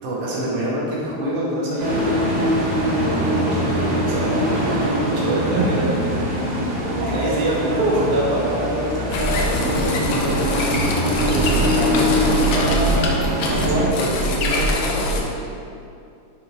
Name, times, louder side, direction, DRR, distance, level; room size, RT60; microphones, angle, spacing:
voice 1, 0.0-2.1 2.9-6.2 6.9-7.8 8.1-10.5 13.5-15.3, equal, 85° right, -6 dB, 3.0 m, -26 dB
sound 1, 1.8-13.9, equal, 40° right, 1.8 m, -23 dB
voice 2, 6.8-8.1 11.2-13.2 13.5-14.5, right 2 dB, 65° right, -3 dB, 1.7 m, -25 dB
sound 2, 9.1-15.2, equal, 75° left, 1.4 m, -23 dB
10.0 x 3.8 x 3.5 m, 2.5 s
omnidirectional pair, 3.5 m